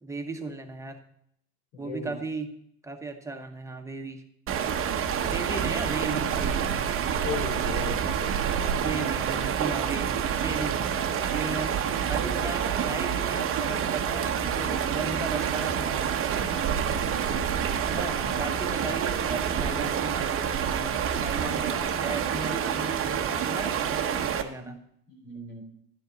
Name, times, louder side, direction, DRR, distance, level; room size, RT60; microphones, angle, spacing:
voice 1, 0.0-1.0 1.8-2.6 2.8-4.2 5.2-6.8 8.4-10.9 11.3-11.7 12.0-16.3 17.9-24.8, right 3 dB, 5° right, 5 dB, 1.0 m, -36 dB
voice 2, 1.7-2.1 5.0-5.1 7.2-8.0 16.8-17.1 24.5-24.7 25.1-25.6, left 4 dB, 85° left, 2 dB, 4.0 m, -37 dB
sound 1, 4.5-24.4, right 8 dB, 30° right, 0.9 m, -28 dB
11.0 x 10.0 x 4.0 m, 0.71 s
supercardioid pair, 120°, 46 cm